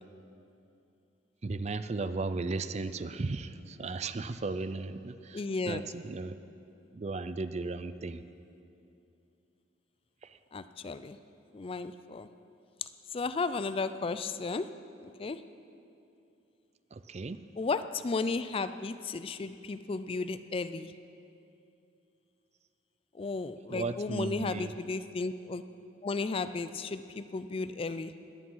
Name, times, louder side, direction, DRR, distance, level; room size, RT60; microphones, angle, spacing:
voice 1, 1.4-6.4 6.9-8.2 10.2-10.4 16.9-17.4 23.7-24.7, right 3 dB, 35° right, 12 dB, 0.4 m, -36 dB
voice 2, 5.3-5.8 10.5-11.2 11.5-12.3 12.8-14.7 15.0-15.4 17.6-20.9 23.1-25.6 26.0-28.1, left 4 dB, 30° left, 12 dB, 0.3 m, -34 dB
20.5 x 8.6 x 5.6 m, 2.7 s
head